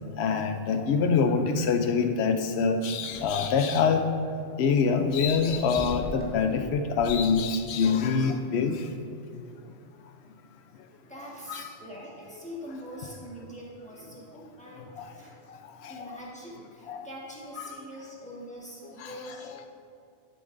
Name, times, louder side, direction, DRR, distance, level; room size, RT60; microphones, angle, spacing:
voice 1, 0.2-4.0 4.6-8.8 11.5-11.7 15.8-16.0 16.9-17.1 17.6-17.7 19.0-19.1, left 5 dB, 65° left, 7 dB, 0.8 m, -25 dB
sound 1, 3.0-3.4 4.6-6.4 7.0-8.0, equal, 10° right, 1.1 m, -42 dB
voice 2, 11.1-15.4 15.9-19.7, equal, 5° left, -5 dB, 1.5 m, -43 dB
11.0 x 7.8 x 2.6 m, 2.4 s
omnidirectional pair, 1.2 m